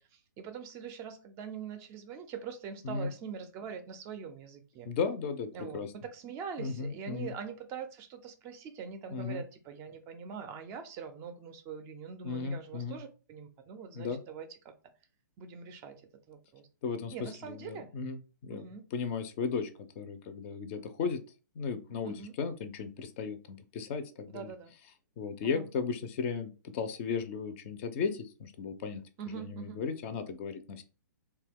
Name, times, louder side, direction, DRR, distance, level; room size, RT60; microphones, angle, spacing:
voice 1, 0.0-4.9 5.5-14.7 15.4-16.0 16.3-16.7 17.1-17.9 18.5-18.8 22.0-22.4 24.3-24.7 25.4-25.7 29.2-29.8, right 6 dB, 25° right, 0.4 m, -43 dB
voice 2, 4.9-5.9 6.6-7.3 9.1-9.4 12.2-13.0 14.0-14.2 16.8-18.2 18.4-18.6 18.9-19.7 20.0-21.2 21.6-24.5 25.2-29.0 29.3-30.8, left 5 dB, 40° left, 0.4 m, -35 dB
2.7 x 2.2 x 3.5 m
hypercardioid pair, 130°, 11 cm